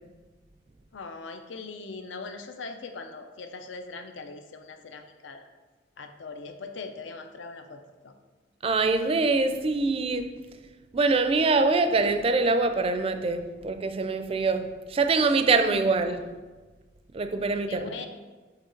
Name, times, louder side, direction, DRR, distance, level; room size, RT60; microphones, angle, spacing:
voice 1, 0.9-5.5 6.0-8.1 17.7-18.1, left 4 dB, 75° left, 7 dB, 0.5 m, -40 dB
voice 2, 8.6-10.3 10.9-16.2 17.1-17.8, right 3 dB, 30° right, 8 dB, 0.4 m, -24 dB
8.1 x 3.0 x 3.8 m, 1.3 s
head